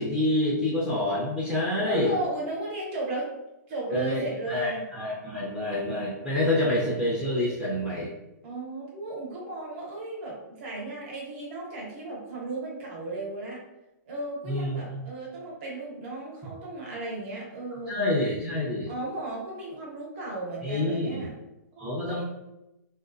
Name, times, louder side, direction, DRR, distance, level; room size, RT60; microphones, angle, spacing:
voice 1, 0.0-2.1 3.9-8.1 14.5-15.0 17.9-18.9 20.6-21.2 21.8-22.2, left 1 dB, 10° right, -7 dB, 0.7 m, -27 dB
voice 2, 1.9-3.3 3.7-4.8 8.4-13.6 14.1-18.0 18.9-21.3 21.8-22.0, right 2 dB, 40° right, -3 dB, 1.1 m, -35 dB
3.6 x 2.3 x 2.6 m, 0.92 s
hypercardioid pair, 160°, 10 cm